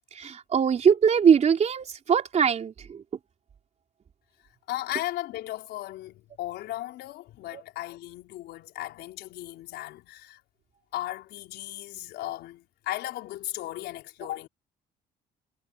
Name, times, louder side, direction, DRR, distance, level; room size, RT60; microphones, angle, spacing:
voice 1, 0.1-3.0 7.5-7.6, right 7 dB, 40° right, 3.9 m, -22 dB
voice 2, 4.7-10.4 10.9-14.5, left 15 dB, 80° left, 5.7 m, -36 dB
cardioid pair, 110°, 17 cm